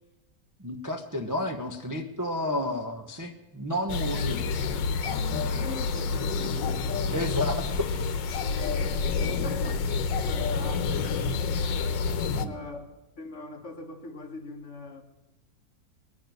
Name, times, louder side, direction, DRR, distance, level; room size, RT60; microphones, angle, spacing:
voice 1, 0.6-4.6 5.3-5.7 7.1-7.9 12.4-12.5, left 1 dB, 15° right, 0.7 m, -31 dB
sound 1, 3.9-12.5, left 4 dB, 90° left, 1.5 m, -28 dB
voice 2, 5.0-6.6 8.4-9.2 9.4-11.3 12.4-12.9 13.2-15.0, left 3 dB, 45° left, 1.8 m, -42 dB
21.0 x 7.1 x 9.1 m
omnidirectional pair, 1.9 m